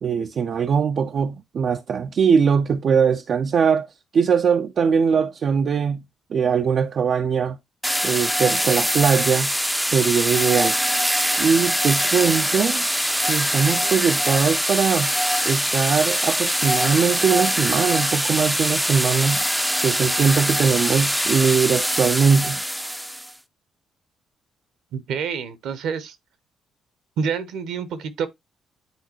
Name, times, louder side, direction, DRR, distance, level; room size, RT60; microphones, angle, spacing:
voice 1, 0.0-3.9 4.1-6.0 6.3-7.6 8.0-9.5 9.8-10.8 11.4-12.9 13.2-15.1 15.4-19.4 19.8-22.6, right 6 dB, 55° right, 0.4 m, -21 dB
sound 1, 7.8-23.3, equal, ahead, 0.5 m, -23 dB
voice 2, 24.9-26.2 27.2-28.3, right 6 dB, 70° right, 0.9 m, -27 dB
9.3 x 3.9 x 2.9 m
hypercardioid pair, 45°, 0 cm